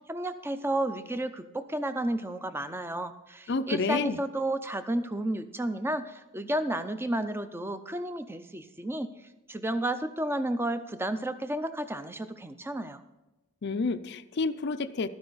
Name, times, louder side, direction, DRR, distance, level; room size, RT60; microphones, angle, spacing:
voice 1, 0.1-13.0, right 1 dB, 10° right, 11 dB, 0.5 m, -32 dB
voice 2, 3.5-4.2 13.6-15.1, left 3 dB, 50° left, 12 dB, 0.4 m, -29 dB
12.5 x 9.8 x 4.0 m, 1.0 s
head